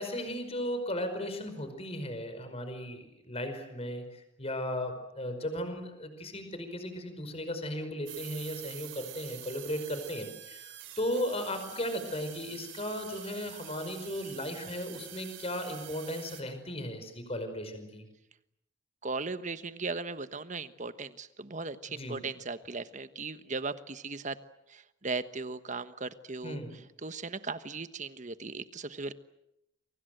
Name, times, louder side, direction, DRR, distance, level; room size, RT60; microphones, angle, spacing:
voice 1, 0.0-4.0 4.4-18.1 21.9-22.3 26.4-26.8, equal, 30° left, 8 dB, 5.3 m, -36 dB
sound 1, 8.1-16.4, right 13 dB, 80° right, 3.7 m, -46 dB
voice 2, 19.0-24.4 24.7-26.6 27.0-29.1, right 3 dB, 40° right, 12 dB, 1.3 m, -37 dB
29.0 x 24.5 x 7.9 m, 0.85 s
head